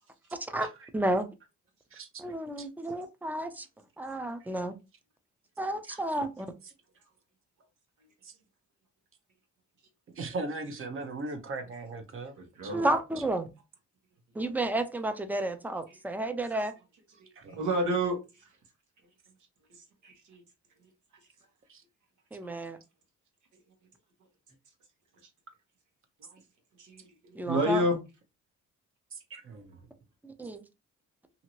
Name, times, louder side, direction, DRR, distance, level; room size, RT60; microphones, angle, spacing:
voice 1, 0.9-1.3 2.2-3.7 4.0-4.8 5.6-6.5 12.7-13.5 14.3-16.7 22.3-22.8 27.4-27.8 30.2-30.6, right 1 dB, 5° right, 0.5 m, -31 dB
voice 2, 1.9-2.2 2.6-2.7 5.8-6.0 8.2-8.3 10.2-12.3 12.6-13.0 17.4-17.6 21.7-21.8 29.1-29.9, right 3 dB, 45° right, 0.8 m, -39 dB
voice 3, 12.4-12.9 17.2-18.2 19.8-20.4 22.4-22.5 26.2-26.4 26.8-28.0, equal, 80° right, 1.2 m, -30 dB
2.8 x 2.6 x 2.9 m
cardioid pair, 90°, 30 cm